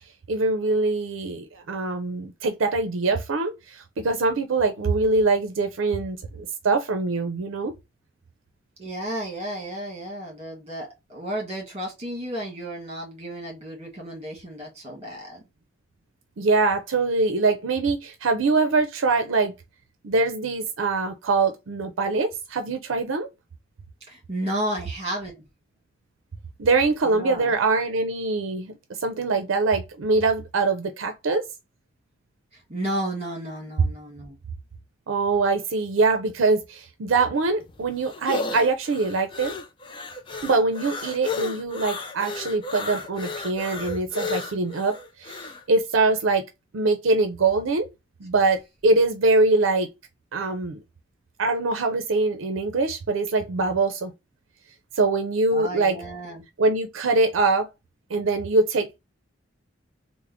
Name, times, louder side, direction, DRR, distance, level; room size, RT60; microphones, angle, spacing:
voice 1, 0.3-7.7 16.4-19.5 20.0-23.3 26.6-28.7 29.0-31.4 35.1-39.5 40.4-46.4 46.7-47.9 48.2-49.9 50.3-50.8 51.4-54.1 54.9-56.0 56.6-57.7 58.1-59.0, right 3 dB, 80° right, 0.5 m, -23 dB
voice 2, 8.8-15.4 24.1-25.4 27.0-27.5 32.7-34.4 55.5-56.4, right 1 dB, 30° right, 1.5 m, -32 dB
sound 1, 37.4-45.6, left 4 dB, 25° left, 0.4 m, -33 dB
3.4 x 2.1 x 3.5 m
head